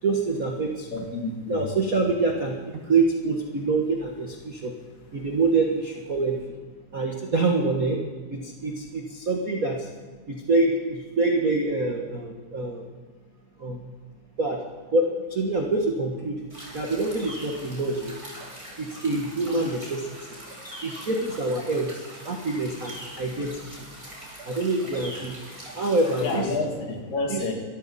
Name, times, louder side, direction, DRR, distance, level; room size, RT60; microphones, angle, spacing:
voice 1, 0.0-0.9 1.5-4.7 5.1-6.4 6.9-8.0 8.3-9.9 10.3-12.9 13.6-13.9 14.4-16.5 16.7-18.1 18.8-20.3 20.8-23.9 24.4-25.3 25.7-26.5 27.3-27.4, right 3 dB, 80° right, 1 dB, 0.7 m, -26 dB
voice 2, 0.9-1.7 26.2-27.5, left 3 dB, 85° left, 1 dB, 4.0 m, -29 dB
sound 1, 16.5-26.4, right 1 dB, 10° right, 4.3 m, -42 dB
24.0 x 13.5 x 4.1 m, 1.5 s
omnidirectional pair, 3.8 m